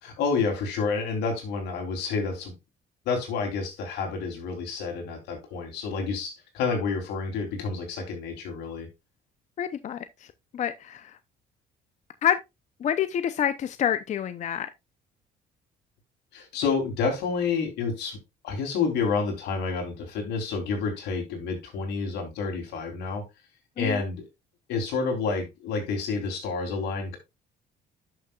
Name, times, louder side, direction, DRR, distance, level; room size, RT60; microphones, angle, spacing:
voice 1, 0.0-2.5 3.0-8.9 16.3-18.2 18.4-23.2 23.8-24.2 24.7-27.2, left 4 dB, 80° left, 3.4 m, -29 dB
voice 2, 9.6-10.0 10.5-11.1 12.2-12.4 12.8-14.7 23.8-24.0, left 9 dB, 45° left, 0.6 m, -27 dB
11.5 x 6.7 x 2.4 m
cardioid pair, 110°, 17 cm